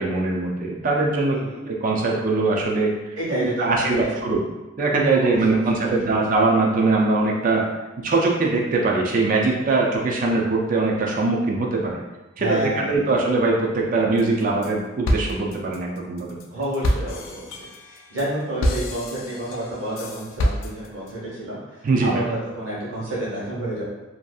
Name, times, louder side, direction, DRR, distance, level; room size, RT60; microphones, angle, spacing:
voice 1, 0.0-1.4 1.7-2.9 3.6-4.4 4.8-7.7 8.0-12.0 12.4-16.4 21.8-22.2, right 3 dB, 45° right, -1 dB, 0.4 m, -21 dB
voice 2, 1.3-1.6 3.2-4.1 5.2-6.2 12.4-13.1 16.5-23.8, right 1 dB, 75° right, -7 dB, 1.1 m, -29 dB
sound 1, 14.2-14.7 15.0-21.1, equal, 80° left, 0.3 m, -27 dB
2.6 x 2.5 x 2.3 m, 1.0 s
head